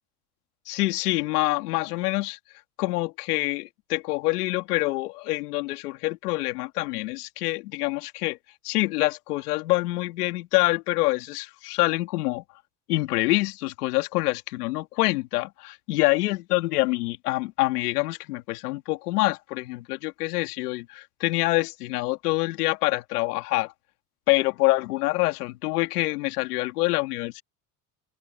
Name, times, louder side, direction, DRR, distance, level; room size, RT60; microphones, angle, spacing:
voice 1, 0.7-2.4 2.8-8.4 8.6-12.4 12.9-23.7 24.3-27.4, left 20 dB, 85° left, 2.7 m, -26 dB
open air
hypercardioid pair, 75°, 45 cm